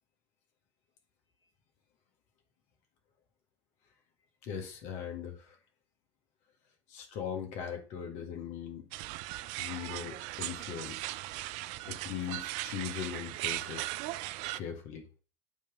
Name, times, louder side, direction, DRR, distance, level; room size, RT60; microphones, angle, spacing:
voice 1, 4.4-5.6 6.9-8.8 9.6-11.1 11.9-14.0 14.5-15.0, left 8 dB, 60° left, 4 dB, 1.7 m, -40 dB
sound 1, 8.9-14.6, right 17 dB, 60° right, 0.4 m, -38 dB
9.1 x 3.3 x 5.2 m, 0.37 s
hypercardioid pair, 75°, 14 cm